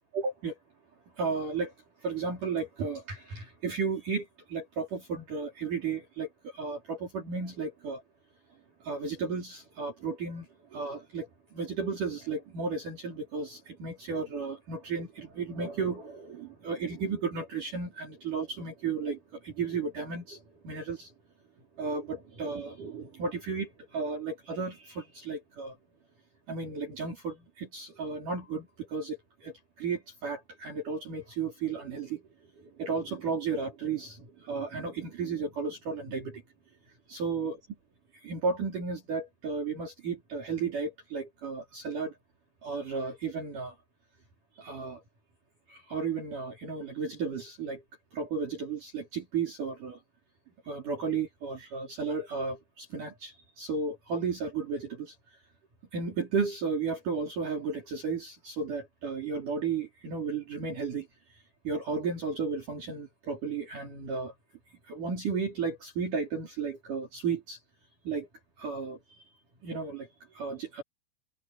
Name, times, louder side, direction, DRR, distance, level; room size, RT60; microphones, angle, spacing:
voice 1, 0.1-0.6 1.2-1.7 2.0-8.0 8.8-21.1 21.8-25.8 26.5-32.2 32.6-36.4 37.1-37.6 38.2-42.1 42.6-43.8 44.6-45.0 45.7-47.8 48.1-50.0 50.6-55.1 55.9-61.1 61.6-64.3 64.8-67.6 68.0-68.3 68.6-69.2 69.6-70.8, right 5 dB, 45° right, 5.0 m, -34 dB
omnidirectional pair, 5.6 m